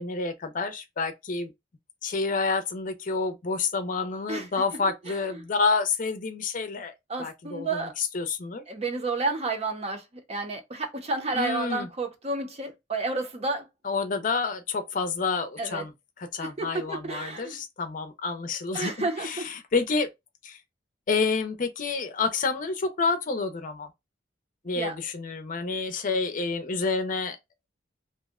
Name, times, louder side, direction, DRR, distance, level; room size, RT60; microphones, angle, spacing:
voice 1, 0.0-1.5 2.0-6.9 7.2-8.6 11.3-11.9 13.8-15.9 16.3-20.1 20.4-20.6 21.1-23.9 24.6-27.4, left 4 dB, 45° left, 0.6 m, -29 dB
voice 2, 5.1-5.4 7.1-7.9 8.7-13.7 15.6-15.9 16.4-17.6 18.7-19.5 24.8-25.0, right 3 dB, 35° right, 0.7 m, -31 dB
2.7 x 2.1 x 3.5 m
head